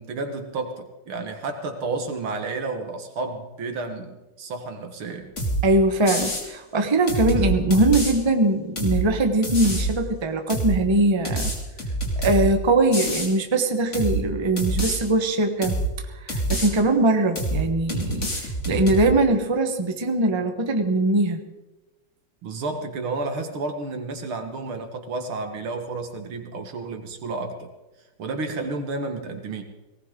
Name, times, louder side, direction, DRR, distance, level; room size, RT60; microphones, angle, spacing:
voice 1, 0.0-5.3 22.4-27.7 28.2-29.6, right 3 dB, 70° right, 5 dB, 2.4 m, -31 dB
sound 1, 5.4-5.6 6.1-6.5 7.1-8.1 8.8-9.0 9.4-9.9 10.5-10.8 11.3-12.5 12.9-13.3 13.9-14.2 14.6-15.0 15.6-15.9 16.3-16.7 17.4-17.6 17.9-19.1, right 1 dB, 30° left, 3.0 m, -26 dB
voice 2, 5.6-11.5 12.2-15.8 16.2-21.4, right 2 dB, 20° right, 5 dB, 0.9 m, -21 dB
19.0 x 18.5 x 3.8 m, 1.1 s
omnidirectional pair, 2.4 m